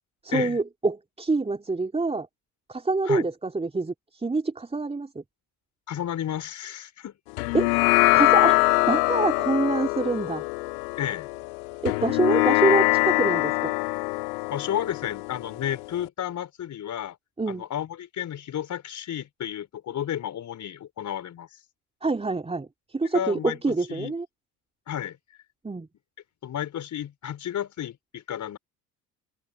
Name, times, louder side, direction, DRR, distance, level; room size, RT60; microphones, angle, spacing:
voice 1, 0.2-2.3 2.7-5.2 7.5-7.8 8.1-10.4 11.8-13.7 17.4-17.6 22.0-24.3 25.6-25.9, right 3 dB, 15° right, 3.6 m, -26 dB
voice 2, 5.9-7.2 11.0-11.3 14.5-17.2 17.5-21.5 23.1-23.6 23.9-24.1 24.9-25.2 26.4-28.6, left 10 dB, 40° left, 5.2 m, -32 dB
sound 1, 7.4-16.1, left 28 dB, 60° left, 2.2 m, -23 dB
open air
figure-of-eight pair, 65°, 46 cm